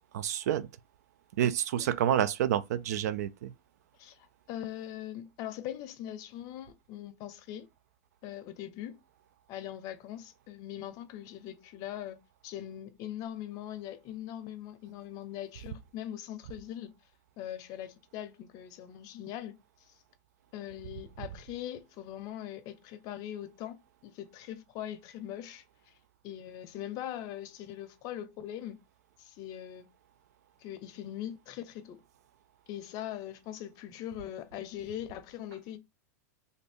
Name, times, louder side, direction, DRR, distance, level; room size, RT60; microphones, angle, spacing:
voice 1, 0.1-0.7 1.4-3.5, right 10 dB, 75° right, 0.4 m, -28 dB
voice 2, 4.0-7.7 8.2-9.0 9.5-16.9 17.4-19.6 20.5-25.6 26.2-28.8 29.2-29.9 30.6-32.0 32.7-35.8, left 11 dB, 45° left, 0.6 m, -41 dB
2.7 x 2.5 x 3.4 m
hypercardioid pair, 120°, 9 cm